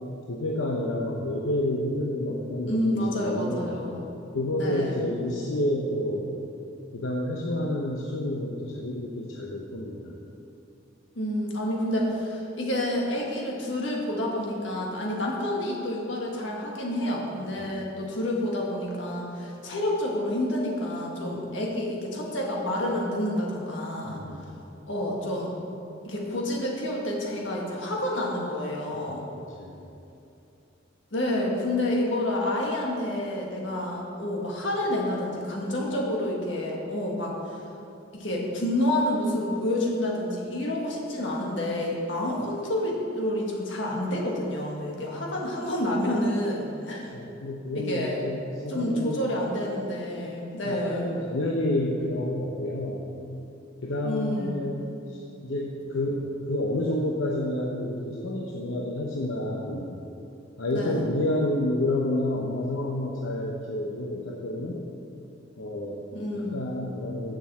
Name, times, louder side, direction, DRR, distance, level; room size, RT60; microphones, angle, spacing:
voice 1, 0.3-3.8 4.3-6.4 6.9-10.2 24.0-24.4 28.9-29.0 29.6-29.9 47.1-49.3 50.6-53.1 53.8-54.8 55.1-60.0 60.6-64.8 65.6-66.0 66.4-67.4, left 1 dB, 85° left, -2 dB, 0.8 m, -29 dB
voice 2, 2.7-4.0 4.6-5.0 11.1-24.2 24.9-25.5 26.0-29.2 31.1-37.6 38.1-47.1 47.7-48.2 48.7-51.2 54.0-54.6 60.7-61.0 66.1-66.6, left 1 dB, 70° left, -2 dB, 1.8 m, -29 dB
7.2 x 6.3 x 7.6 m, 2.7 s
head